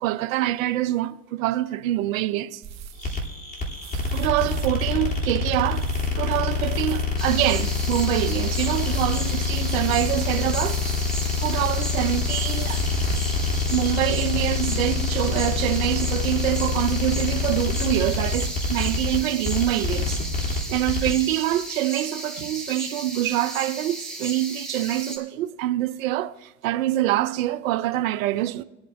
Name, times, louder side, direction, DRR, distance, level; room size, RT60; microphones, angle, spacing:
voice 1, 0.0-2.6 3.0-3.2 4.1-5.9 6.2-10.8 11.4-12.8 13.7-20.2 20.7-28.6, right 14 dB, 85° right, 0.6 m, -25 dB
sound 1, 2.6-13.3, right 9 dB, 40° right, 1.2 m, -42 dB
sound 2, 3.0-21.2, left 4 dB, 25° left, 3.1 m, -26 dB
sound 3, 7.2-25.2, right 1 dB, ahead, 3.9 m, -35 dB
24.5 x 9.1 x 2.6 m
hypercardioid pair, 90°, 40 cm